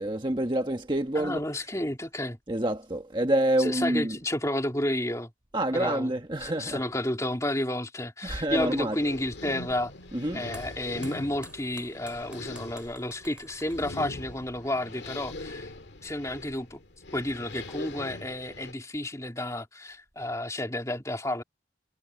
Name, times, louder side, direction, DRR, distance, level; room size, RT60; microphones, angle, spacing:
voice 1, 0.0-1.4 2.5-4.2 5.5-6.8 8.2-9.0 10.1-10.5, right 1 dB, 25° right, 1.4 m, -27 dB
voice 2, 1.1-2.4 3.6-5.3 5.7-6.1 6.4-9.9 10.3-15.7 16.0-16.8 17.1-21.4, left 1 dB, 15° left, 3.3 m, -31 dB
sound 1, 8.5-18.7, left 2 dB, 75° left, 2.0 m, -42 dB
sound 2, 9.4-15.2, right 1 dB, 5° right, 7.1 m, -52 dB
head